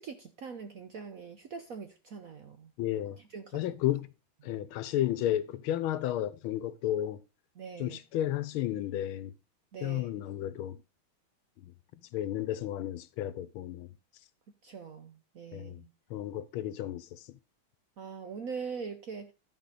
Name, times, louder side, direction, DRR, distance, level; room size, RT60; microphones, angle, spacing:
voice 1, 0.0-2.7 3.2-3.6 7.5-8.0 9.7-10.1 14.6-15.9 18.0-19.3, right 5 dB, 65° right, 0.9 m, -42 dB
voice 2, 2.8-3.2 3.5-4.1 4.4-7.2 7.8-9.3 9.8-10.8 12.1-13.9 15.5-15.8 16.1-17.2, left 12 dB, 85° left, 1.5 m, -32 dB
12.5 x 5.0 x 3.9 m
omnidirectional pair, 2.3 m